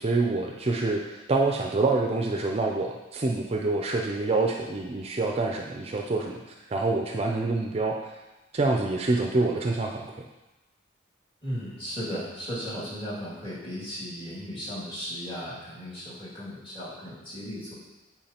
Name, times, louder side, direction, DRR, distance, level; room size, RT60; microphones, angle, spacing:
voice 1, 0.0-6.4 6.7-8.1 8.5-10.1, right 3 dB, 30° right, 1 dB, 0.4 m, -26 dB
voice 2, 11.4-17.7, equal, 25° left, -8 dB, 2.2 m, -36 dB
8.6 x 4.6 x 2.9 m, 1.1 s
head